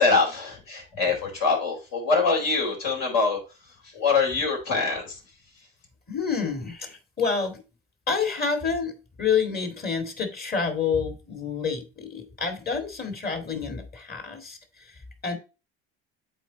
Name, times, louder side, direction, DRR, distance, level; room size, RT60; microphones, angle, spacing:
voice 1, 0.0-3.4 3.9-5.2, left 4 dB, 65° left, 0 dB, 4.3 m, -24 dB
voice 2, 6.1-7.6 8.1-8.9 9.2-14.9 15.2-15.4, left 5 dB, 35° left, 6 dB, 2.4 m, -28 dB
8.1 x 4.2 x 3.9 m, 0.30 s
supercardioid pair, 90°, 29 cm